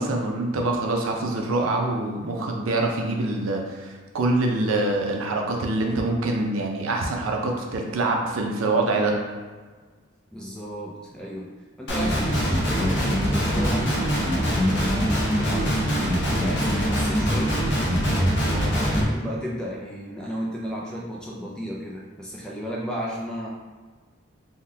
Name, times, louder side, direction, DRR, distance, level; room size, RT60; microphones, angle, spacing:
voice 1, 0.0-9.2, right 2 dB, 90° right, 1 dB, 0.5 m, -25 dB
voice 2, 10.3-11.5 11.8-17.7 18.3-23.5, equal, 5° left, -3 dB, 0.3 m, -34 dB
Guitar, 11.9-19.0, equal, 55° left, 0.6 m, -23 dB
3.6 x 2.2 x 2.7 m, 1.4 s
head